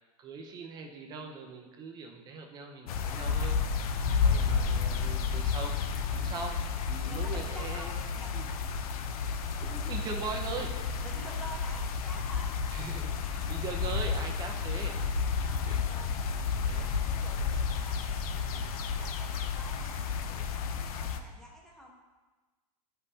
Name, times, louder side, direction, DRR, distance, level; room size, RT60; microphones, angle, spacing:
voice 1, 0.2-3.6 4.2-5.7 6.1-8.5 9.6-10.8 12.7-15.0 15.7-15.8 16.2-16.9, right 4 dB, 20° right, 3 dB, 0.7 m, -41 dB
sound 1, 2.9-21.2, left 5 dB, 90° left, 0.6 m, -31 dB
voice 2, 4.0-4.9 7.0-8.4 11.0-12.5 15.3-16.2 16.5-18.0 18.4-21.9, equal, 5° left, -2 dB, 0.9 m, -49 dB
9.8 x 5.5 x 2.8 m, 1.2 s
supercardioid pair, 165°, 18 cm